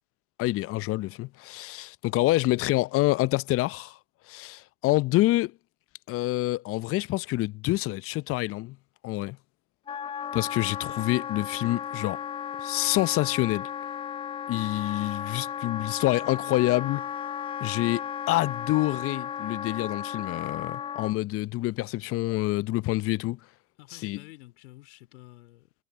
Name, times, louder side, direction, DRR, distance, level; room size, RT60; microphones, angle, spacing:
voice 1, 0.4-4.0 4.3-5.5 6.1-8.8 9.0-9.4 10.3-12.2 12.6-13.7 14.5-17.1 17.6-23.4 23.9-24.2, left 18 dB, 35° left, 0.8 m, -27 dB
Wind instrument woodwind instrument, 9.9-21.2, left 8 dB, 15° left, 0.4 m, -35 dB
voice 2, 23.8-25.7, left 19 dB, 65° left, 4.2 m, -50 dB
hypercardioid pair, 95°, 37 cm